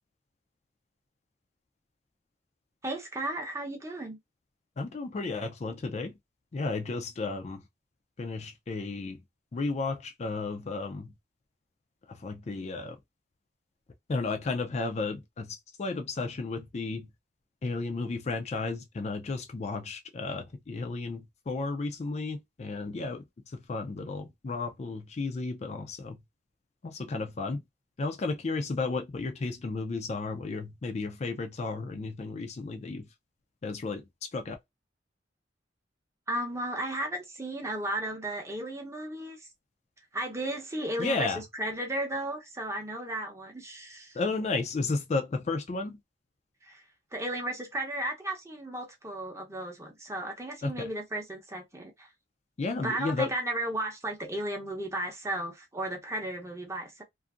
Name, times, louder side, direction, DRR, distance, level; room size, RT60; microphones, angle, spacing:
voice 1, 2.8-4.2 36.3-39.5 40.1-44.2 46.6-46.8 47.1-52.1 52.8-57.0, right 1 dB, 15° right, 0.7 m, -34 dB
voice 2, 4.8-6.1 6.5-7.6 8.2-9.2 9.5-11.1 12.1-13.0 14.1-17.1 17.6-26.2 26.8-27.6 28.0-33.1 33.6-34.6 41.0-41.4 44.1-46.0 50.6-50.9 52.6-53.3, left 3 dB, 35° left, 0.3 m, -33 dB
2.6 x 2.5 x 2.4 m
head